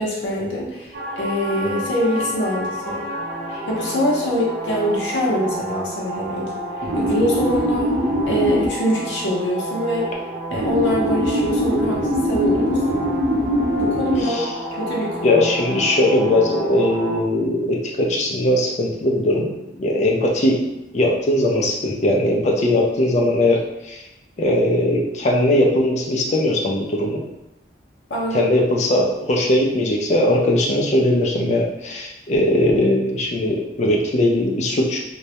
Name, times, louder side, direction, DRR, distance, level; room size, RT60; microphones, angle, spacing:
voice 1, 0.0-3.0 3.5-8.0 8.3-10.1 10.5-13.1 13.8-14.4 14.7-15.4 28.1-28.5, equal, 80° left, -4 dB, 0.6 m, -24 dB
sound 1, 0.9-17.2, equal, 55° right, 0.4 m, -25 dB
voice 2, 15.2-19.5 19.8-20.7 20.9-24.0 24.4-27.2 28.3-35.0, left 1 dB, 40° left, 0 dB, 0.4 m, -19 dB
2.2 x 2.0 x 2.8 m, 0.90 s
head